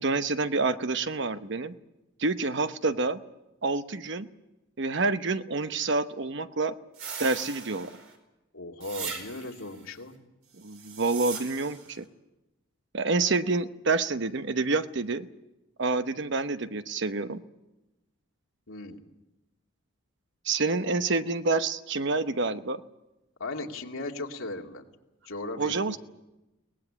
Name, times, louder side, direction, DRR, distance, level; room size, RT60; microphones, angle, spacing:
voice 1, 0.0-1.7 2.2-3.2 3.6-4.3 4.8-6.8 7.2-7.9 10.6-12.1 12.9-15.3 15.8-17.4 20.4-22.8 25.6-26.0, right 3 dB, 55° right, 11 dB, 0.9 m, -28 dB
sound 1, 7.0-8.2 8.8-9.7 10.6-11.9, right 6 dB, 80° right, 4.9 m, -39 dB
voice 2, 8.5-10.1 18.7-19.0 23.4-24.8 25.2-26.0, left 2 dB, 80° left, 2 dB, 2.4 m, -37 dB
23.0 x 19.0 x 8.7 m, 1.0 s
head